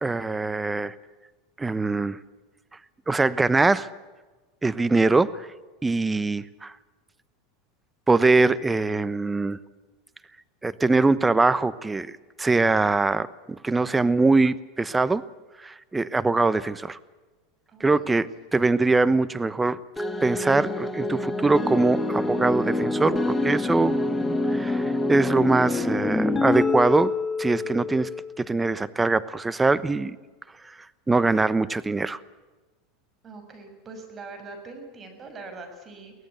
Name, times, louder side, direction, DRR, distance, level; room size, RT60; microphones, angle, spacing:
voice 1, 0.0-0.9 1.6-2.2 3.1-3.9 4.6-5.5 5.8-6.7 8.1-9.6 10.6-12.1 12.4-15.2 15.6-17.0 17.8-19.8 20.2-27.1 27.4-28.1 28.4-30.2 30.7-30.8 31.1-32.2, right 3 dB, 15° right, 16 dB, 1.1 m, -23 dB
voice 2, 17.7-18.1 33.2-36.1, right 3 dB, 30° right, 6 dB, 6.5 m, -42 dB
sound 1, 20.0-28.4, left 2 dB, 10° left, 2.2 m, -26 dB
24.0 x 17.5 x 8.2 m, 1.3 s
hypercardioid pair, 105°, 0 cm